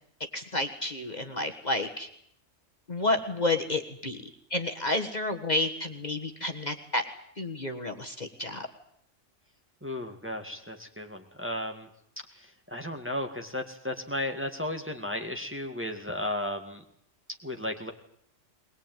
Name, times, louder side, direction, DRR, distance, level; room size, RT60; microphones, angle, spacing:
voice 1, 0.3-2.1 2.9-4.2 4.5-7.0 7.4-8.7, left 2 dB, 35° left, 5 dB, 1.7 m, -30 dB
voice 2, 9.8-11.9 12.3-16.8 17.4-17.9, left 1 dB, 10° right, 4 dB, 2.0 m, -34 dB
21.0 x 21.0 x 9.2 m, 0.68 s
omnidirectional pair, 1.3 m